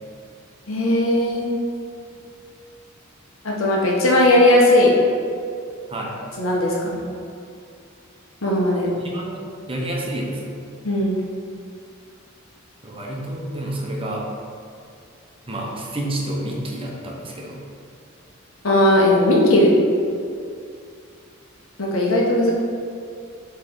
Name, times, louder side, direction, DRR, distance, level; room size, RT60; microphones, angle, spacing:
voice 1, 0.7-1.5 3.4-4.9 6.4-7.0 8.4-8.9 10.8-11.2 18.6-19.7 21.8-22.5, left 1 dB, 85° left, -3 dB, 1.2 m, -17 dB
voice 2, 9.0-10.5 12.8-14.2 15.5-17.6, right 1 dB, 25° right, -2 dB, 0.9 m, -29 dB
7.5 x 3.3 x 3.8 m, 2.3 s
head